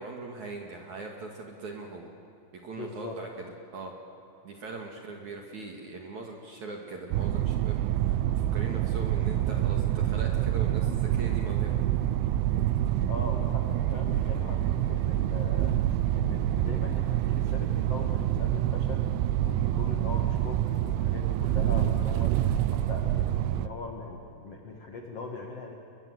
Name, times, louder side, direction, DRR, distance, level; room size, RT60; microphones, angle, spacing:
voice 1, 0.0-2.1 2.5-3.5 3.7-3.9 4.4-11.8, right 3 dB, 50° right, 1 dB, 2.4 m, -40 dB
voice 2, 2.7-3.2 13.1-15.8 16.1-19.1 19.4-22.3 22.7-25.7, left 3 dB, 65° left, 2 dB, 1.5 m, -40 dB
sound 1, 7.1-23.7, right 12 dB, 80° right, 3.1 m, -27 dB
30.0 x 22.5 x 7.8 m, 2.8 s
omnidirectional pair, 5.8 m